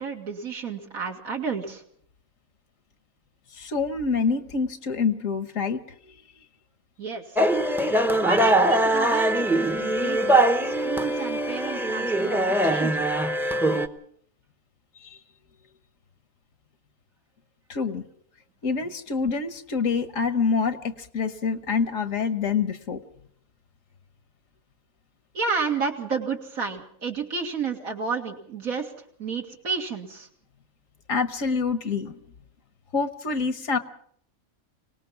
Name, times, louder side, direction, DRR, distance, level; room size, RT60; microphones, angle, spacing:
voice 1, 0.0-1.8 7.0-7.5 8.2-10.4 10.6-13.1 25.3-28.9 29.2-30.3, right 5 dB, 80° right, 2 dB, 2.6 m, -31 dB
voice 2, 3.6-5.8 15.0-15.2 17.7-18.0 18.6-23.0 31.1-32.2 32.9-33.8, left 5 dB, 70° left, 11 dB, 1.5 m, -26 dB
sound 1, 7.4-13.9, right 1 dB, ahead, 0.7 m, -22 dB
25.0 x 18.5 x 5.8 m, 0.65 s
omnidirectional pair, 1.4 m